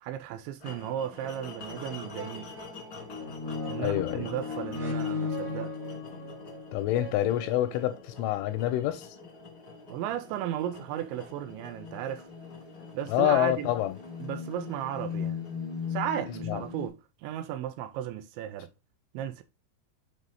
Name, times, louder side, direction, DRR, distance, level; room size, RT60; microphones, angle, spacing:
voice 1, 0.0-2.5 3.7-5.8 9.9-12.3 12.9-13.7 14.2-15.4 15.9-18.7 19.1-19.4, right 11 dB, 85° right, 3.0 m, -35 dB
sound 1, 0.6-16.7, left 3 dB, 45° left, 1.3 m, -48 dB
sound 2, 1.6-1.7 2.0-8.0 8.6-8.7, left 4 dB, 55° right, 1.0 m, -36 dB
voice 2, 3.8-4.3 6.7-9.1 13.1-14.0 16.5-16.6, left 14 dB, 90° left, 3.3 m, -27 dB
sound 3, 9.2-9.7 10.4-16.9, left 7 dB, ahead, 1.0 m, -39 dB
7.7 x 4.1 x 3.5 m
omnidirectional pair, 5.5 m